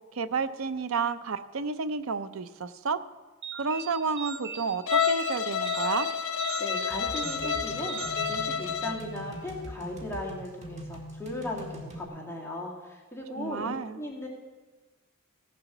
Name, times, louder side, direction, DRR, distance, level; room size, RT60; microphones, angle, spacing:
voice 1, 0.1-3.0 3.6-6.1 13.4-14.0, right 5 dB, 80° right, 12 dB, 0.6 m, -31 dB
sound 1, 3.4-9.2, right 6 dB, 60° right, 1.3 m, -40 dB
Bowed string instrument, 4.9-9.1, left 7 dB, 85° left, 0.8 m, -29 dB
voice 2, 6.6-14.3, left 1 dB, 10° left, -3 dB, 2.0 m, -37 dB
sound 2, 6.9-12.1, equal, 35° right, 1.7 m, -42 dB
16.5 x 6.9 x 6.0 m, 1.3 s
head